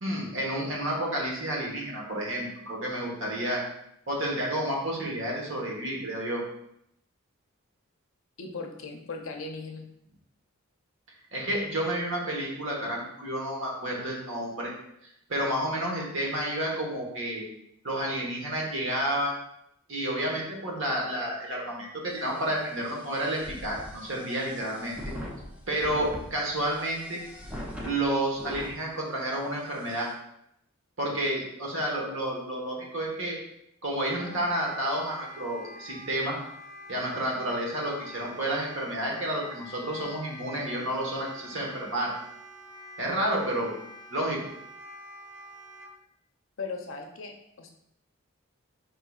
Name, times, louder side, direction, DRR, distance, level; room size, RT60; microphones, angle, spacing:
voice 1, 0.0-3.6 4.1-6.4 11.3-14.7 15.3-17.4 17.8-19.3 19.9-25.0 25.7-27.2 27.8-30.1 31.0-33.4 33.8-36.4 36.9-42.1 43.0-43.7 44.1-44.4, right 1 dB, 65° right, -2 dB, 1.1 m, -30 dB
voice 2, 8.4-9.9 46.6-47.7, left 4 dB, 70° left, 2 dB, 0.6 m, -38 dB
sound 1, 22.1-28.8 29.3-29.4 29.7-30.1, equal, 5° right, 0.4 m, -42 dB
Wind instrument woodwind instrument, 34.2-45.9, equal, 35° right, 1.2 m, -46 dB
4.7 x 3.7 x 2.3 m, 0.77 s
head